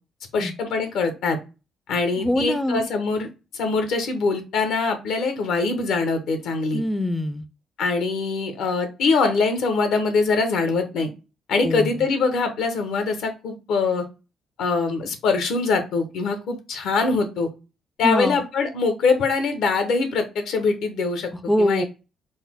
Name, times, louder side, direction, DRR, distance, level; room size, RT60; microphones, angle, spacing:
voice 1, 0.3-1.4 1.9-3.3 3.5-6.8 7.8-11.1 11.5-14.0 14.6-17.5 18.0-21.3 21.6-21.8, left 4 dB, 80° left, 7 dB, 0.8 m, -23 dB
voice 2, 2.2-2.9 6.7-7.4 11.6-12.1 18.0-18.4 21.5-21.8, left 1 dB, 5° left, 10 dB, 0.4 m, -23 dB
4.0 x 2.0 x 3.5 m, 0.30 s
cardioid pair, 90°, 0 cm